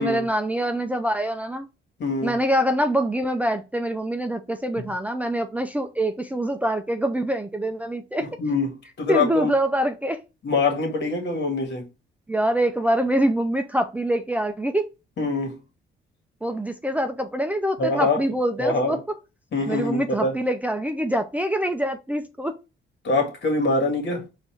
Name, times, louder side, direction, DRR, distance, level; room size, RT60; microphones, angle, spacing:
voice 1, 0.0-1.7 2.2-8.3 9.1-10.2 12.3-14.8 16.4-19.0 19.7-22.5, right 1 dB, 5° right, 0.5 m, -25 dB
voice 2, 2.0-2.4 4.7-4.8 8.4-9.5 10.4-11.9 15.2-15.6 17.8-18.2 18.6-19.0 19.5-20.3 23.0-24.3, left 3 dB, 60° left, 1.8 m, -24 dB
4.4 x 2.7 x 4.5 m
cardioid pair, 90°, 20 cm